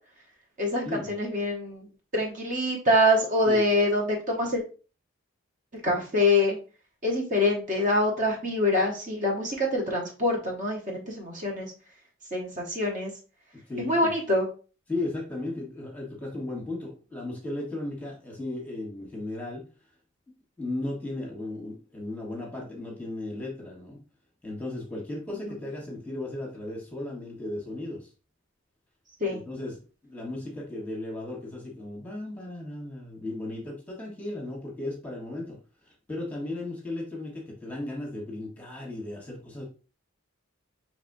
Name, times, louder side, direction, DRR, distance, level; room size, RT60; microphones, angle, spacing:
voice 1, 0.6-1.9 2.1-4.6 5.8-6.6 7.0-11.7 12.3-13.1 13.8-14.5 29.2-29.4, left 1 dB, 40° right, -1 dB, 1.2 m, -25 dB
voice 2, 13.7-14.1 14.9-19.6 20.6-24.0 24.4-28.1 29.3-35.6 36.1-39.6, left 2 dB, 5° left, -2 dB, 1.3 m, -35 dB
6.1 x 3.2 x 2.6 m, 0.36 s
head